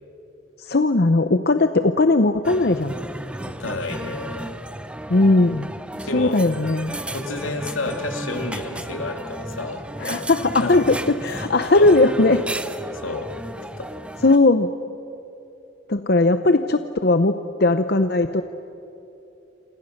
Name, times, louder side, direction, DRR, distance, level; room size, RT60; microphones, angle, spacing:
voice 1, 0.6-2.9 5.1-5.7 6.1-6.9 10.0-12.4 14.2-14.7 15.9-18.4, left 2 dB, 55° left, 9 dB, 0.7 m, -18 dB
sound 1, 2.4-14.4, right 1 dB, 5° right, 0.7 m, -34 dB
voice 2, 3.4-4.6 6.1-6.4 7.1-9.9 10.6-10.8 11.7-11.9 12.9-13.3 13.8-13.9, left 3 dB, 85° left, 4 dB, 2.7 m, -30 dB
28.0 x 27.5 x 6.6 m, 2.9 s
head